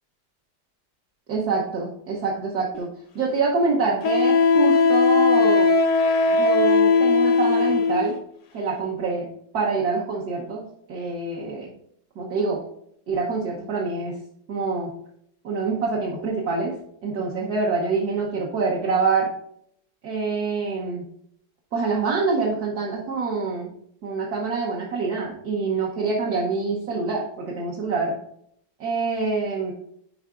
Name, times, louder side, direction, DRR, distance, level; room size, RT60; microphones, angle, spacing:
voice 1, 1.3-2.9 3.1-5.7 6.3-8.1 8.5-9.3 9.5-10.6 10.9-11.7 12.2-12.6 13.1-14.2 14.5-14.9 15.4-16.7 17.0-19.3 20.0-21.0 21.7-23.7 24.0-28.2 28.8-29.7, right 4 dB, 65° right, -4 dB, 1.4 m, -25 dB
Wind instrument woodwind instrument, 2.7-2.8 4.0-8.1, left 4 dB, 65° left, 0.7 m, -18 dB
10.0 x 4.6 x 2.4 m, 0.70 s
omnidirectional pair, 1.9 m